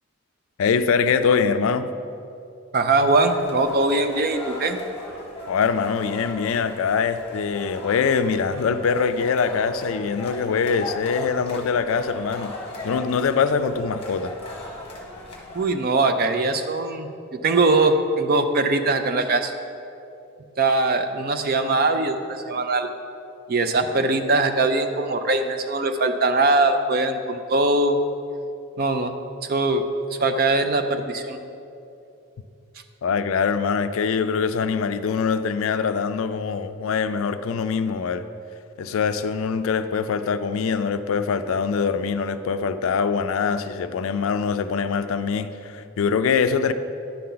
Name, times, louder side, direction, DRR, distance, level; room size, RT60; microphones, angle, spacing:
voice 1, 0.6-1.9 5.5-12.5 12.8-14.3 33.0-38.2 38.8-46.7, left 5 dB, 70° left, 11 dB, 0.3 m, -23 dB
voice 2, 2.7-4.8 15.5-19.5 20.6-22.9 23.5-28.0 28.8-29.1 29.5-29.8 30.1-31.4, right 2 dB, 45° right, 7 dB, 0.4 m, -21 dB
sound 1, 3.1-15.7, left 1 dB, 25° left, 1.0 m, -38 dB
10.0 x 5.6 x 3.9 m, 2.7 s
head